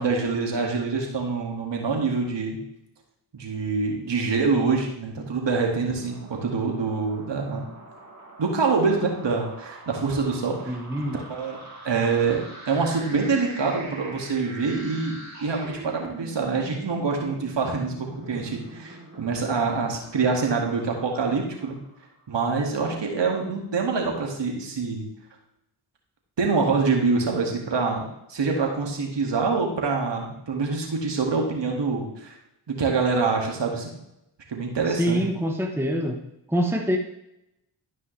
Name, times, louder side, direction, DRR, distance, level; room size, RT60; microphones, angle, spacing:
voice 1, 0.0-2.6 3.3-7.6 8.4-10.8 11.1-11.6 11.8-21.8 22.3-25.1 26.4-28.0 28.3-32.4 32.7-33.9 34.5-35.2, right 4 dB, 55° right, 1 dB, 2.3 m, -25 dB
sound 1, 5.8-22.1, right 2 dB, 30° right, 2.9 m, -43 dB
voice 2, 10.7-11.2 35.0-36.2 36.5-37.0, equal, 5° right, 3 dB, 1.2 m, -25 dB
13.0 x 5.4 x 3.4 m, 0.84 s
supercardioid pair, 45°, 50 cm